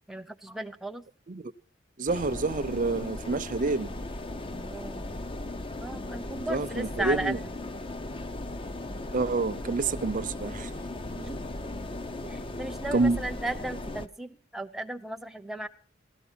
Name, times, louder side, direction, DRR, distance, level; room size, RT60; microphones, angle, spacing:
voice 1, 0.1-1.1 4.5-5.2 5.8-7.5 11.2-11.4 12.2-15.7, right 1 dB, ahead, 0.8 m, -36 dB
voice 2, 2.0-3.9 6.5-7.4 9.1-10.7 12.9-13.2, right 3 dB, 45° right, 0.6 m, -28 dB
sound 1, 2.1-14.1, left 2 dB, 30° left, 0.7 m, -37 dB
17.0 x 13.0 x 5.7 m
head